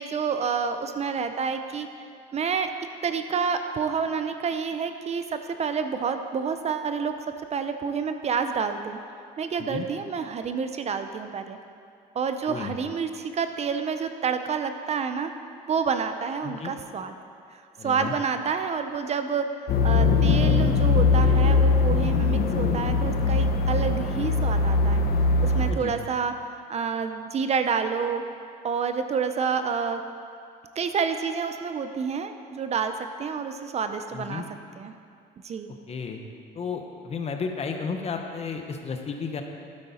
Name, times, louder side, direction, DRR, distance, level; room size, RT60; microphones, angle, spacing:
voice 1, 0.0-1.9 2.3-2.7 3.0-7.1 7.5-9.0 9.4-11.6 12.1-15.3 15.7-17.1 17.5-19.5 19.8-25.0 25.4-28.2 28.6-30.0 30.8-34.4 34.8-34.9 35.4-35.7, right 6 dB, 40° right, 8 dB, 0.6 m, -28 dB
voice 2, 17.8-18.1 25.7-25.9 34.1-34.4 35.9-36.2 36.5-39.4, left 5 dB, 40° left, 4 dB, 1.1 m, -33 dB
sound 1, 19.7-25.7, left 4 dB, 65° left, 0.9 m, -21 dB
12.0 x 8.6 x 4.3 m, 2.4 s
cardioid pair, 110°, 17 cm